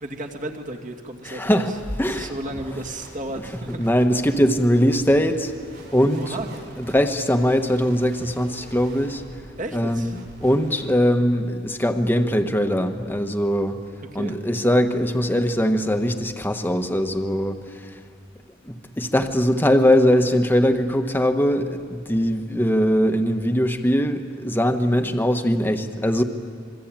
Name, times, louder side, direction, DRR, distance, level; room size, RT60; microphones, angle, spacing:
voice 1, 0.0-1.6 2.0-3.9 6.2-6.7 9.6-10.2 14.1-14.4, right 1 dB, 45° right, 2 dB, 2.5 m, -33 dB
voice 2, 1.2-2.3 3.8-5.5 5.9-6.4 6.8-9.2 9.7-13.8 14.1-17.6 17.9-18.0 18.6-26.2, equal, 10° left, 6 dB, 1.4 m, -21 dB
sound 1, 1.9-10.8, right 1 dB, 60° right, 7.7 m, -45 dB
26.5 x 24.0 x 9.0 m, 2.1 s
head